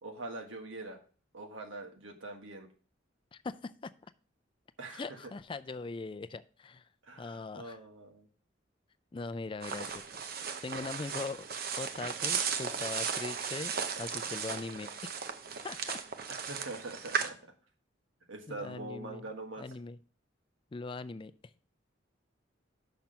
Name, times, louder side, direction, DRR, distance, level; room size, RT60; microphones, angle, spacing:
voice 1, 0.0-1.0 1.3-2.7 4.8-5.3 7.0-8.3 16.3-17.4 18.3-19.6, right 2 dB, 85° right, 3 dB, 1.5 m, -43 dB
voice 2, 3.3-3.9 4.9-6.8 7.2-7.8 9.1-10.0 10.6-11.5 11.8-14.9 15.6-16.0 18.5-19.3 19.6-20.0 20.7-21.3, left 3 dB, 25° left, 13 dB, 0.4 m, -40 dB
sound 1, 9.6-17.3, right 6 dB, 50° right, 0.7 m, -36 dB
5.9 x 5.9 x 5.3 m, 0.40 s
head